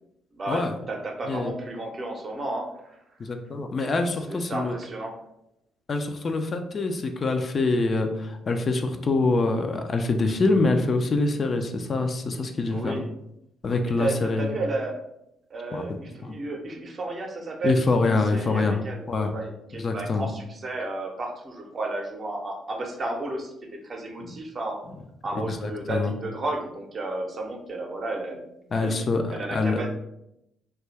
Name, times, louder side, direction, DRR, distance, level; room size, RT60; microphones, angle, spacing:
voice 1, 0.3-3.0 4.3-5.1 12.7-13.1 13.8-15.0 15.5-23.5 23.8-24.8 25.2-28.4 28.8-29.0 29.3-29.9, right 2 dB, 40° right, 1 dB, 0.6 m, -32 dB
voice 2, 3.2-4.7 5.9-13.0 13.6-14.5 15.7-15.8 16.2-16.3 17.6-18.8 19.1-19.3 19.8-20.3 24.2-24.3 25.5-26.1 28.7-29.8, left 3 dB, 40° left, 5 dB, 0.3 m, -25 dB
2.6 x 2.2 x 3.1 m, 0.82 s
figure-of-eight pair, 45°, 0 cm